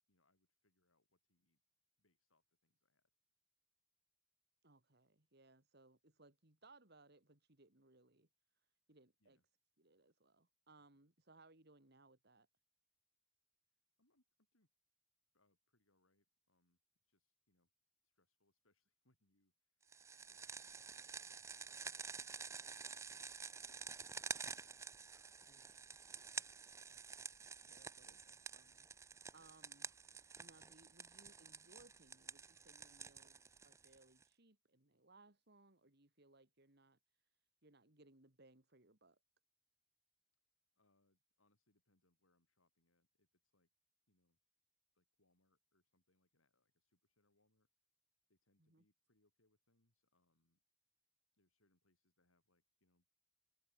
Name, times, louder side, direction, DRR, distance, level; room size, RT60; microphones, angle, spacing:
voice 1, 0.1-1.6 2.0-3.1 9.2-9.4 13.6-14.7 15.3-17.7 18.0-24.6 40.8-43.7 44.1-44.4 44.9-47.7 48.3-50.6 51.3-53.1, left 1 dB, 80° left, 7.4 m, -83 dB
voice 2, 4.6-8.3 8.5-9.4 9.8-12.5 25.5-26.6 26.9-27.4 27.6-29.9 30.4-39.2 48.6-48.8, right 2 dB, 50° right, 2.7 m, -68 dB
sound 1, 19.9-34.2, right 5 dB, 15° right, 0.3 m, -50 dB
head